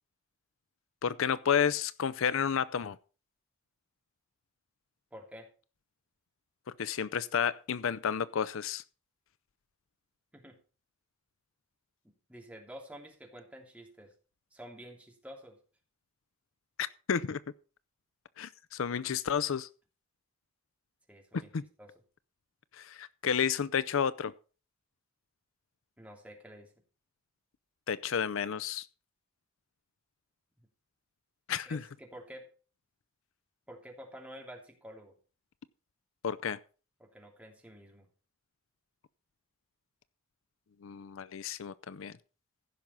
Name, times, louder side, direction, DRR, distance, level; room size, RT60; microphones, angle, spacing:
voice 1, 1.0-3.0 6.8-8.8 16.8-17.4 18.4-19.7 21.3-21.6 22.7-24.3 27.9-28.9 31.5-31.8 36.2-36.6 40.8-42.1, left 7 dB, 65° left, 0.5 m, -31 dB
voice 2, 5.1-5.5 10.3-10.6 12.0-14.1 14.5-15.6 21.1-21.5 21.8-21.9 26.0-26.7 30.6-30.7 31.6-32.5 33.7-35.2 37.0-38.1, equal, 5° right, 2.9 m, -49 dB
15.5 x 6.0 x 5.5 m
head